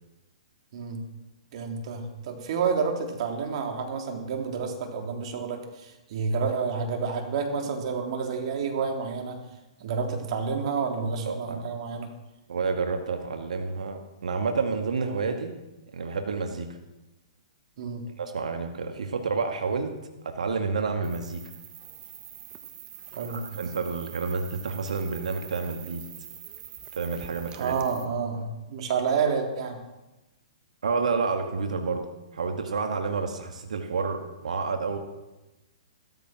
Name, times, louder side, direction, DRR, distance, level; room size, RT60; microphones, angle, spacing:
voice 1, 0.7-1.1 1.5-9.4 9.8-12.1 17.8-18.1 23.1-23.6 27.5-29.8, right 5 dB, 55° right, 3 dB, 3.6 m, -29 dB
voice 2, 11.2-11.6 12.5-15.5 15.9-16.7 18.2-19.9 20.2-21.4 23.3-26.0 26.9-27.8 30.8-32.0 32.3-35.0, right 4 dB, 80° right, 5 dB, 2.1 m, -29 dB
sound 1, 21.0-28.0, right 10 dB, 25° right, 1.5 m, -45 dB
15.5 x 14.0 x 6.1 m, 1.0 s
hypercardioid pair, 130°, 4 cm